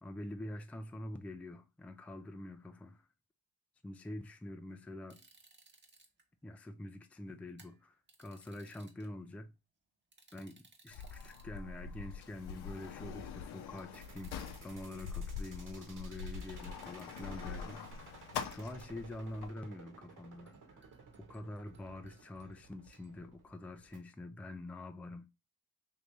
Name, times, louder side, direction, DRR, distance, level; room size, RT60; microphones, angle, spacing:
voice 1, 0.0-3.1 3.8-5.2 6.4-9.5 10.3-20.9 21.2-25.3, left 1 dB, 5° left, 0.4 m, -46 dB
sound 1, 5.1-6.2 7.5-9.1 10.1-11.6 12.6-12.7 13.8-14.0 14.2-14.4 14.8-14.9 16.4-17.5 18.3-18.8 19.2-19.3 19.7-19.9 20.5-23.2, right 3 dB, 30° right, 0.9 m, -65 dB
Sliding door, 10.9-19.5, left 6 dB, 80° left, 0.6 m, -44 dB
sound 2, 13.9-24.0, right 4 dB, 55° right, 1.4 m, -56 dB
2.8 x 2.8 x 3.3 m
supercardioid pair, 65°, 38 cm